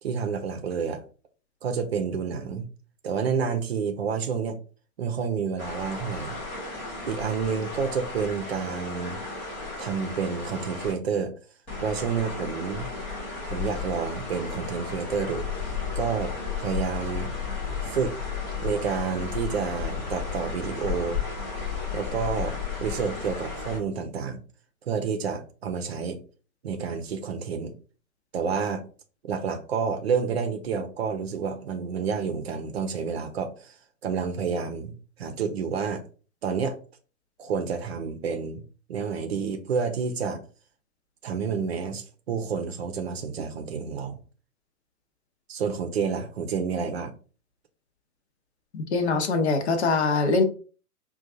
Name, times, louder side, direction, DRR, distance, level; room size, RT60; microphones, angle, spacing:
voice 1, 0.0-1.0 1.6-2.7 3.0-4.6 5.0-6.4 7.1-9.2 9.8-11.3 11.8-12.9 13.5-15.5 16.0-16.3 16.6-17.3 17.8-18.1 18.6-21.2 21.9-22.5 22.8-24.4 24.9-26.2 26.6-27.7 28.3-28.8 29.2-33.7 34.0-36.0 36.4-36.8 37.4-38.6 38.9-40.4 41.2-44.2 45.5-47.1, right 6 dB, 45° right, 0.7 m, -29 dB
sound 1, 5.6-10.9 11.7-23.8, left 5 dB, 5° left, 0.4 m, -33 dB
voice 2, 48.7-50.4, left 3 dB, 45° left, 0.8 m, -23 dB
5.3 x 2.4 x 2.6 m
figure-of-eight pair, 115°, 45 cm